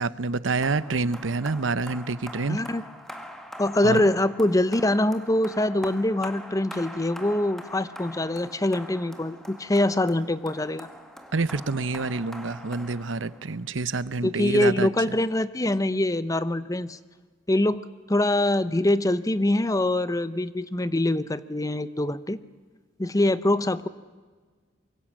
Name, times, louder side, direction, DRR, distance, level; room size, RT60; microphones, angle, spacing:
voice 1, 0.0-2.6 3.8-4.0 11.3-15.1, right 3 dB, 85° right, 16 dB, 0.9 m, -27 dB
sound 1, 0.6-13.6, equal, ahead, 1.9 m, -43 dB
voice 2, 2.5-2.8 3.6-10.9 14.2-17.0 17.5-17.8 18.1-22.4 23.0-23.9, left 1 dB, 20° left, 15 dB, 0.8 m, -24 dB
25.0 x 23.0 x 7.4 m, 1.4 s
head